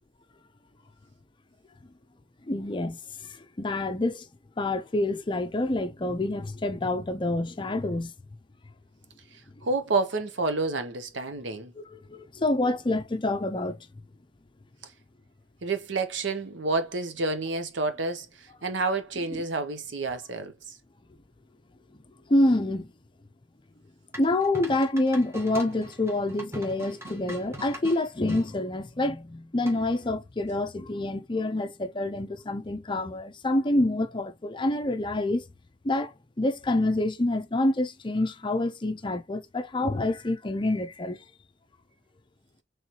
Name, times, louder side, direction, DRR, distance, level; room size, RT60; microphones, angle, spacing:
voice 1, 2.4-4.3 4.6-8.1 11.8-13.8 22.3-22.9 24.2-35.4 35.8-41.2, left 2 dB, 25° left, 0.5 m, -27 dB
voice 2, 9.6-11.7 15.6-20.8, right 3 dB, 75° right, 0.8 m, -29 dB
sound 1, 24.1-28.5 29.7-30.1, right 1 dB, 15° right, 1.2 m, -42 dB
4.5 x 3.2 x 2.9 m
head